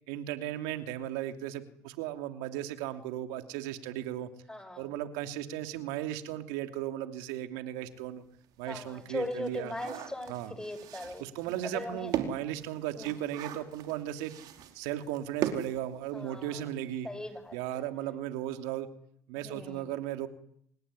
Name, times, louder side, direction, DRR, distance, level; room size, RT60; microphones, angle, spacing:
voice 1, 0.1-4.3 4.8-8.2 8.6-9.7 10.3-10.5 11.2-14.3 14.7-17.1 17.5-18.9 19.3-20.3, right 12 dB, 80° right, 7 dB, 2.9 m, -36 dB
voice 2, 4.5-4.9 8.7-11.3 11.6-12.1 13.0-13.1 16.1-16.7 17.0-17.8 19.4-19.8, left 1 dB, 10° left, 10 dB, 7.2 m, -39 dB
sound 1, 7.9-8.0 8.4-16.5 16.8-16.9 17.2-17.4, right 10 dB, 65° right, 4.7 m, -39 dB
27.5 x 20.0 x 10.0 m, 0.69 s
supercardioid pair, 80°, 7 cm